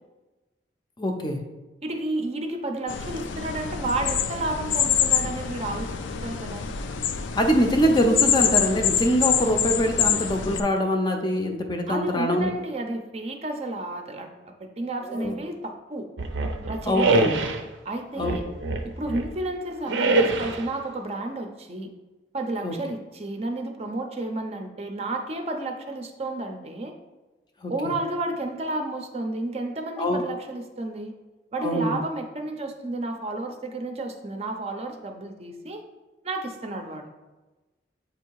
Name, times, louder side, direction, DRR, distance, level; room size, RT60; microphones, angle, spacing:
voice 1, 1.0-1.4 7.4-12.5 15.0-15.3 16.8-17.4 18.2-18.4 22.6-22.7 27.6-27.7 30.0-30.2 31.6-32.0, equal, 25° left, 3 dB, 0.5 m, -23 dB
voice 2, 1.8-5.9 6.2-6.6 11.9-16.1 16.6-17.2 17.8-18.4 18.8-21.9 22.3-26.9 27.7-31.1 31.5-35.8 36.2-37.1, right 2 dB, 35° right, 4 dB, 0.5 m, -31 dB
sound 1, 2.9-10.6, left 8 dB, 85° left, 0.4 m, -26 dB
sound 2, 16.2-17.6 18.2-19.4 19.9-20.7, right 2 dB, 80° right, 0.6 m, -24 dB
7.9 x 2.7 x 4.6 m, 1.2 s
head